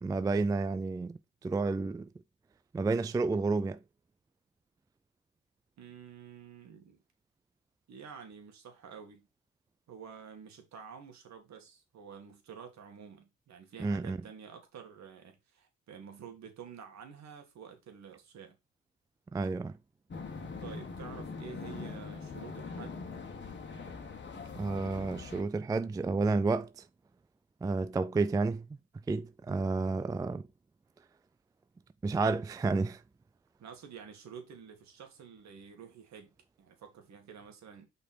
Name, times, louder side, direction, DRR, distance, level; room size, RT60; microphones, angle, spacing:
voice 1, 0.0-2.1 2.7-3.8 13.8-14.2 19.3-19.8 24.6-26.8 27.6-28.7 29.1-30.5 32.0-33.0, right 3 dB, 15° right, 0.3 m, -30 dB
voice 2, 5.8-7.0 7.9-9.3 9.9-18.6 20.4-23.0 30.3-30.4 33.6-37.9, right 7 dB, 65° right, 2.1 m, -49 dB
sound 1, 20.1-25.4, left 4 dB, 35° left, 1.5 m, -42 dB
5.5 x 4.3 x 4.3 m
cardioid pair, 90°, 30 cm